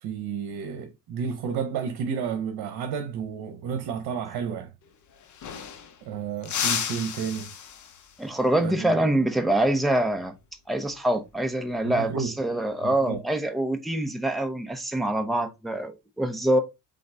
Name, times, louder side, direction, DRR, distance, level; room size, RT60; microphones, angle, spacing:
voice 1, 0.0-4.7 6.0-7.5 8.6-8.9 11.8-12.3 12.8-13.2, right 7 dB, 80° right, 0.9 m, -31 dB
sound 1, 4.8-4.9 5.1-6.0 6.4-8.2 10.7-11.0 12.4-12.9, left 8 dB, 50° left, 0.9 m, -33 dB
voice 2, 8.2-10.3 10.7-16.6, right 1 dB, ahead, 0.7 m, -25 dB
3.9 x 3.8 x 3.3 m
cardioid pair, 120°, 37 cm